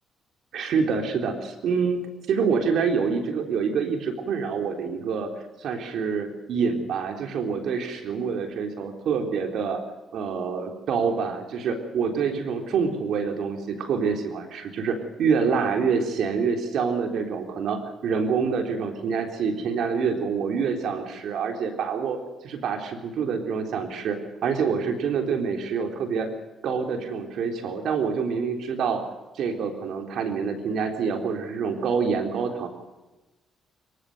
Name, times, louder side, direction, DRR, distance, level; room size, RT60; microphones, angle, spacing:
voice 1, 0.5-5.3 5.6-9.8 10.1-26.3 26.6-29.0 29.3-32.7, right 5 dB, 70° right, 5 dB, 3.8 m, -26 dB
25.5 x 15.5 x 7.9 m, 1.1 s
cardioid pair, 90°, 0 cm